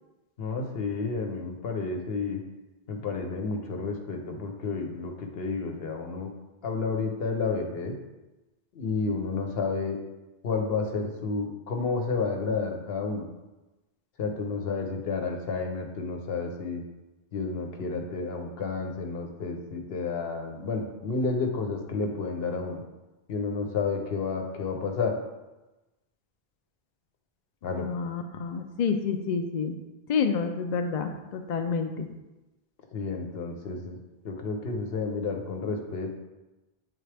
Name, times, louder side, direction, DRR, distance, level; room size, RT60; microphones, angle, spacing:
voice 1, 0.4-2.4 2.9-6.3 6.6-7.9 8.7-10.0 10.4-13.2 14.2-16.8 17.3-22.8 23.3-25.1 27.6-27.9 32.9-34.0 34.2-36.1, left 4 dB, 70° left, 3 dB, 1.0 m, -31 dB
voice 2, 27.8-29.7 30.1-32.1, left 5 dB, 55° left, 6 dB, 0.5 m, -29 dB
7.9 x 3.9 x 3.3 m, 1.1 s
omnidirectional pair, 1.0 m